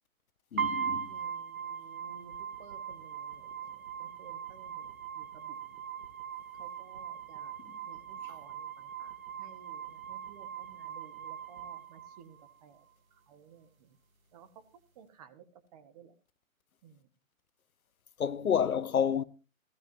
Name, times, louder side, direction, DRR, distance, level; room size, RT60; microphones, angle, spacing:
voice 1, 0.5-1.1 18.2-19.2, left 8 dB, 85° left, 1.0 m, -29 dB
sound 1, 0.6-12.6, right 8 dB, 75° right, 2.5 m, -40 dB
voice 2, 1.0-5.8 6.6-7.5 7.9-12.9 13.3-14.0 14.3-14.6 14.9-16.1 16.8-17.1, right 7 dB, 25° right, 1.2 m, -56 dB
15.0 x 15.0 x 2.7 m
hypercardioid pair, 150°, 42 cm